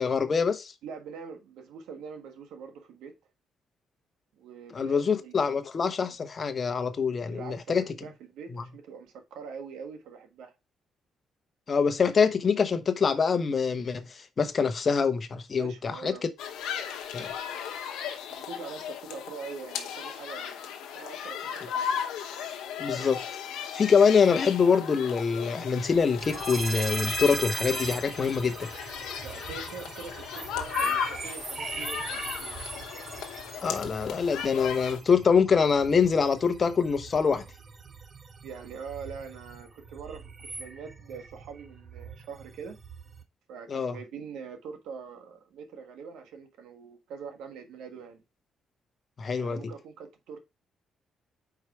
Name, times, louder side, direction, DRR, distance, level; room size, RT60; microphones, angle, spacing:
voice 1, 0.0-0.7 4.7-7.8 8.5-8.6 11.7-16.1 17.1-17.3 22.8-23.2 23.7-28.7 33.6-37.4 43.7-44.0 49.2-49.6, left 5 dB, 40° left, 0.8 m, -25 dB
voice 2, 0.8-3.1 4.3-5.4 7.3-10.5 15.6-16.2 18.3-21.9 29.2-32.6 38.4-42.7 43.5-48.2 49.4-50.4, right 6 dB, 85° right, 1.3 m, -43 dB
sound 1, 16.4-35.0, left 8 dB, 90° left, 0.9 m, -36 dB
sound 2, 26.2-43.2, right 4 dB, 40° right, 1.0 m, -40 dB
4.8 x 4.4 x 4.6 m
cardioid pair, 90°, 0 cm